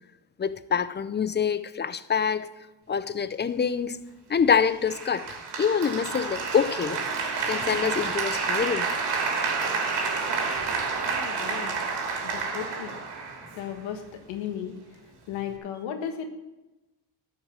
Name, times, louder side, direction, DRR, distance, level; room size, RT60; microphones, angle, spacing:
voice 1, 0.4-2.5 2.9-4.0 4.3-5.3 5.6-7.0 7.5-8.9, left 6 dB, 25° left, 0.6 m, -25 dB
Applause, 4.9-13.9, right 4 dB, 65° right, 2.8 m, -29 dB
voice 2, 11.0-11.8 12.2-13.0 13.5-14.7 15.3-16.3, left 8 dB, 85° left, 1.5 m, -35 dB
12.5 x 5.5 x 7.3 m
cardioid pair, 85°, 44 cm